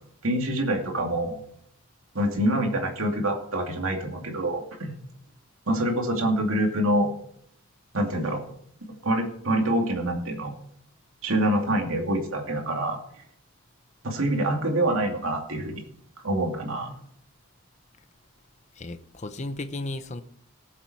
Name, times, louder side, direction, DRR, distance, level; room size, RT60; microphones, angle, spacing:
voice 1, 0.2-1.4 2.1-4.9 5.7-7.1 7.9-8.4 9.0-10.5 11.2-13.0 14.0-15.8 16.2-16.9, right 1 dB, 75° right, 2 dB, 2.5 m, -26 dB
voice 2, 18.8-20.2, left 2 dB, 35° left, 10 dB, 0.8 m, -34 dB
18.5 x 7.4 x 4.7 m, 0.68 s
head